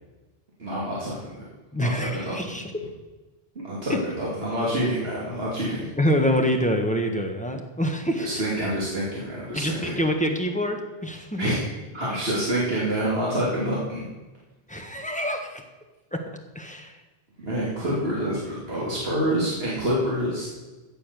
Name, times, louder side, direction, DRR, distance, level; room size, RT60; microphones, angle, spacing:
voice 1, 0.6-1.4 1.8-2.5 3.6-5.9 8.2-10.0 11.4-14.1 17.4-20.5, right 1 dB, 70° right, -6 dB, 2.9 m, -27 dB
voice 2, 1.7-2.7 3.9-4.0 6.0-8.3 9.5-10.8 11.0-11.5 14.7-15.6 16.1-16.2 16.5-17.0, equal, 5° left, 3 dB, 1.4 m, -26 dB
15.0 x 7.0 x 6.9 m, 1.2 s
omnidirectional pair, 1.1 m